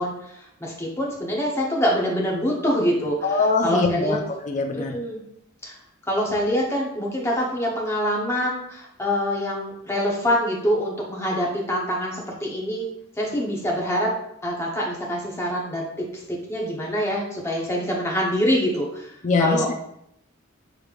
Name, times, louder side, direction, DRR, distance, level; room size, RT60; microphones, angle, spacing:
voice 1, 0.0-4.2 4.7-5.2 5.6-5.8 6.1-12.9 13.2-14.1 14.4-19.1 19.4-19.7, equal, 15° left, -2 dB, 0.9 m, -25 dB
voice 2, 3.2-4.2 4.4-5.0 19.2-19.8, left 3 dB, 35° left, 4 dB, 0.4 m, -22 dB
6.3 x 3.3 x 2.4 m, 0.77 s
head